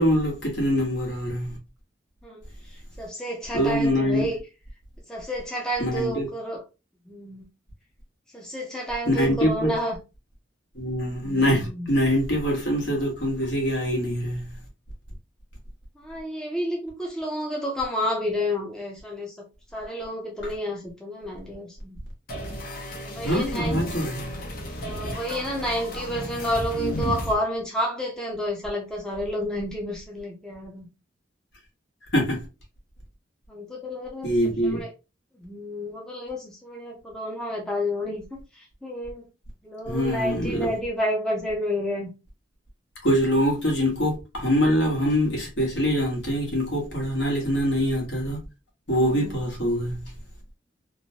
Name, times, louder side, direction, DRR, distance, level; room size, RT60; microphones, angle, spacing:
voice 1, 0.0-1.6 3.5-4.3 5.8-6.3 9.1-9.7 10.7-14.5 23.2-24.3 32.1-32.4 34.2-34.8 39.9-40.7 43.0-48.4 48.9-50.0, equal, 70° left, 1.2 m, -24 dB
voice 2, 2.2-4.4 5.1-6.6 7.1-7.4 8.3-10.0 11.2-11.9 16.0-19.5 19.7-22.0 23.0-23.8 24.8-30.9 33.5-34.9 35.4-39.3 39.6-42.1 48.9-49.4, equal, 5° left, 0.6 m, -30 dB
sound 1, 22.3-27.3, equal, 50° left, 0.7 m, -33 dB
3.0 x 2.1 x 2.7 m
head